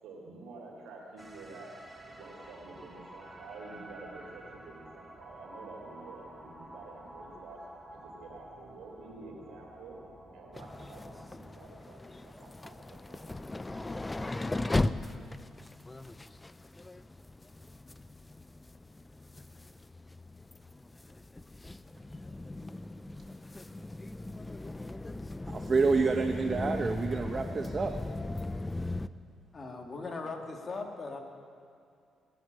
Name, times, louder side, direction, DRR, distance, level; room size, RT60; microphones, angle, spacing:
voice 1, 0.0-1.7 2.2-7.6 7.9-10.0 10.3-13.8, right 3 dB, 80° right, -1 dB, 3.9 m, -49 dB
sound 1, 1.2-11.3, right 1 dB, 10° right, 1.4 m, -50 dB
sound 2, 10.5-29.1, left 2 dB, 15° left, 0.5 m, -38 dB
voice 2, 25.5-27.9, right 4 dB, 35° right, 5 dB, 0.8 m, -28 dB
voice 3, 29.5-31.2, left 3 dB, 35° left, 3 dB, 2.0 m, -39 dB
19.5 x 7.8 x 9.1 m, 2.4 s
cardioid pair, 90°, 0 cm